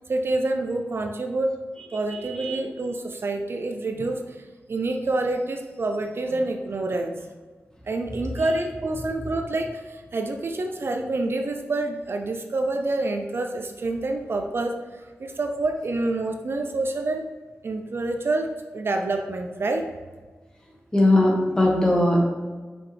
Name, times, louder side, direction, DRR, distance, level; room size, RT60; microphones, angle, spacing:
voice 1, 0.1-1.6 1.9-7.3 7.9-17.3 17.6-19.9, right 2 dB, 55° right, 4 dB, 0.5 m, -27 dB
voice 2, 20.9-22.2, left 1 dB, 15° left, -1 dB, 1.3 m, -19 dB
5.8 x 5.1 x 3.3 m, 1.4 s
wide cardioid pair, 120°, 5 cm